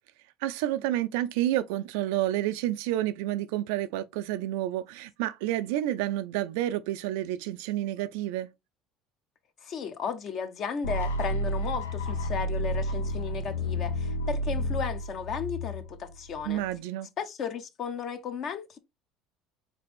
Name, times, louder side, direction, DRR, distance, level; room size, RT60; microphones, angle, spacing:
voice 1, 0.4-8.5 16.4-17.1, right 14 dB, 75° right, 0.4 m, -29 dB
voice 2, 9.6-16.6 17.2-18.8, left 6 dB, 50° left, 0.9 m, -34 dB
sound 1, 10.8-16.8, equal, 90° left, 0.6 m, -31 dB
4.1 x 3.3 x 3.3 m
hypercardioid pair, 70°, 0 cm